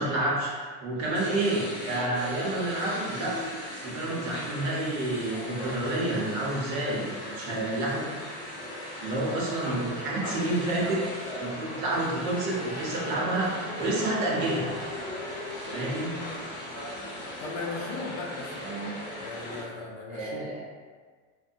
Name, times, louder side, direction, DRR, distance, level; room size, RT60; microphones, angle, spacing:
voice 1, 0.0-3.4 3.7-8.1 9.0-11.0 11.3-14.7 15.6-16.1 18.6-18.9 20.1-20.6, right 2 dB, 85° right, -3 dB, 0.9 m, -29 dB
sound 1, 1.0-19.6, left 1 dB, 25° left, 0.8 m, -37 dB
voice 2, 17.4-18.6 19.2-20.5, left 3 dB, 45° left, -2 dB, 0.4 m, -37 dB
2.6 x 2.1 x 2.6 m, 1.5 s
cardioid pair, 175°, 39 cm